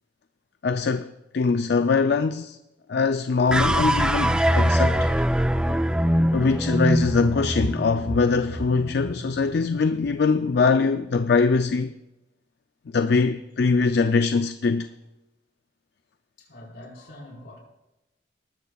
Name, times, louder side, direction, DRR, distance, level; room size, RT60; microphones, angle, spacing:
voice 1, 0.6-2.6 2.9-5.1 6.3-11.9 12.9-14.9, left 4 dB, 60° left, 0.4 m, -22 dB
sound 1, 3.5-9.9, equal, 5° right, 0.4 m, -23 dB
voice 2, 16.4-17.6, left 1 dB, 80° left, 4.3 m, -44 dB
19.0 x 13.0 x 2.3 m
head